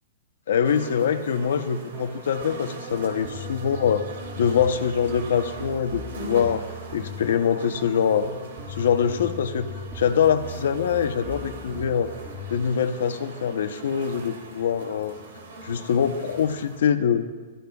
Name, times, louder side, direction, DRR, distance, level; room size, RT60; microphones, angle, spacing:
voice 1, 0.5-4.1 4.4-6.6 6.9-8.3 8.8-9.7 9.9-12.1 12.5-15.2 15.6-17.3, left 7 dB, 70° left, 9 dB, 0.8 m, -24 dB
sound 1, 0.6-16.8, right 3 dB, 85° right, 2.8 m, -41 dB
sound 2, 1.9-12.6, equal, 15° right, 3.0 m, -39 dB
21.0 x 13.5 x 2.4 m, 1.3 s
hypercardioid pair, 175°, 0 cm